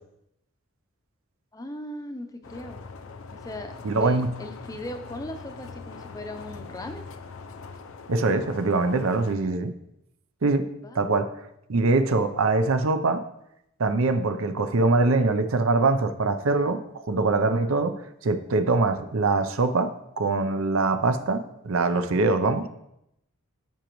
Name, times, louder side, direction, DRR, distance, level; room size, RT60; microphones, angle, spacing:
voice 1, 1.5-2.8 3.3-7.1 10.8-11.2, left 1 dB, 15° left, 7 dB, 0.6 m, -38 dB
sound 1, 2.4-9.4, left 4 dB, 65° left, 0.6 m, -42 dB
voice 2, 3.8-4.3 8.1-9.7 10.4-10.7 10.9-11.3 11.7-13.2 13.8-22.7, right 3 dB, 70° right, 9 dB, 0.6 m, -23 dB
15.0 x 5.2 x 3.1 m, 0.83 s
head